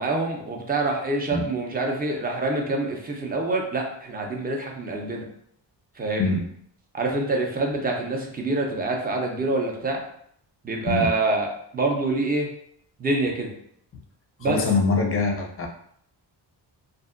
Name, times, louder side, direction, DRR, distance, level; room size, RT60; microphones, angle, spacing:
voice 1, 0.0-5.3 6.0-6.3 6.9-10.0 10.6-11.5 11.7-12.5 13.0-13.5 14.4-14.6, right 2 dB, 20° right, 1 dB, 0.4 m, -26 dB
voice 2, 14.4-15.7, left 3 dB, 35° left, 2 dB, 0.4 m, -24 dB
2.7 x 2.5 x 2.4 m, 0.67 s
cardioid pair, 135°, 43 cm